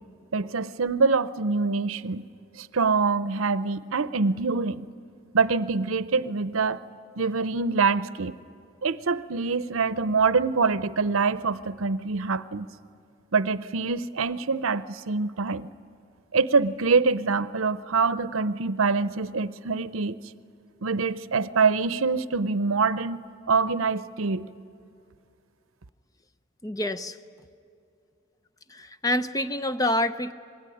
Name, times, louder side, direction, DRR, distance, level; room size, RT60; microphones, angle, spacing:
voice 1, 0.3-2.3 2.6-4.9 5.3-6.8 7.2-8.4 8.8-12.7 13.3-15.7 16.3-20.2 20.8-24.5, right 4 dB, 80° right, 16 dB, 0.7 m, -25 dB
voice 2, 26.6-27.2 28.7-30.3, left 1 dB, 15° left, 12 dB, 0.6 m, -27 dB
26.0 x 21.0 x 10.0 m, 2.4 s
head